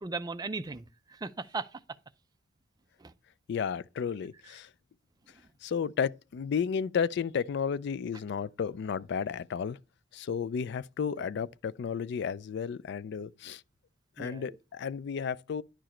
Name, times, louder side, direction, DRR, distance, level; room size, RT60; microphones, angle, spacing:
voice 1, 0.0-1.8 3.0-3.1 11.1-11.3 14.2-14.6, right 4 dB, 20° right, 0.4 m, -38 dB
voice 2, 3.5-4.7 5.6-9.8 10.1-13.6 14.2-15.6, left 6 dB, 60° left, 0.3 m, -32 dB
10.0 x 4.9 x 4.3 m
head